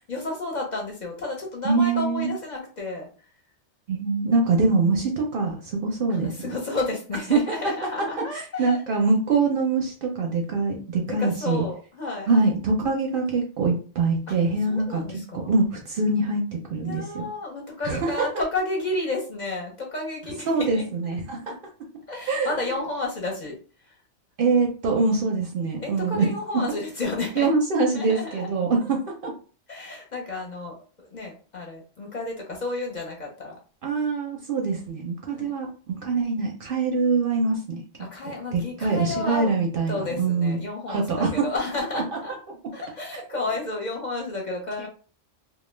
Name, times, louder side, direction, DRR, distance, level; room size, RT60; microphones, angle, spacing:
voice 1, 0.1-3.1 6.1-8.8 11.1-12.3 14.3-14.4 14.7-15.5 16.8-21.1 21.5-21.6 22.1-23.5 23.8-24.0 25.8-27.5 27.9-28.5 28.8-28.9 29.7-33.6 35.3-35.5 38.0-39.5 39.9-42.3 42.7-44.9, left 2 dB, 45° left, 0 dB, 0.7 m, -31 dB
voice 2, 1.6-2.3 3.9-6.4 7.3-11.6 12.3-15.0 15.3-16.4 16.7-17.2 17.8-18.3 20.5-21.5 22.3-22.7 24.4-26.3 26.5-26.6 27.4-29.3 33.8-37.8 38.5-40.6 40.9-41.5 41.9-42.0, right 3 dB, 60° right, 1 dB, 0.6 m, -24 dB
2.2 x 2.1 x 3.1 m, 0.37 s
omnidirectional pair, 1.2 m